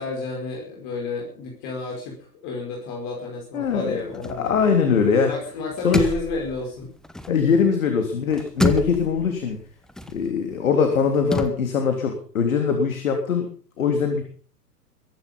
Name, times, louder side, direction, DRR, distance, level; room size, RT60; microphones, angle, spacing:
voice 1, 0.0-4.6 5.2-6.9, left 3 dB, 35° left, 0 dB, 5.4 m, -31 dB
voice 2, 3.5-4.0 4.4-5.3 5.8-6.0 7.3-9.6 10.1-13.5 13.8-14.2, left 6 dB, 55° left, 5 dB, 3.5 m, -21 dB
sound 1, 3.6-5.3 5.6-7.8 8.1-11.5, left 1 dB, ahead, 1.1 m, -30 dB
22.5 x 11.0 x 5.6 m, 0.43 s
figure-of-eight pair, 110°, 48 cm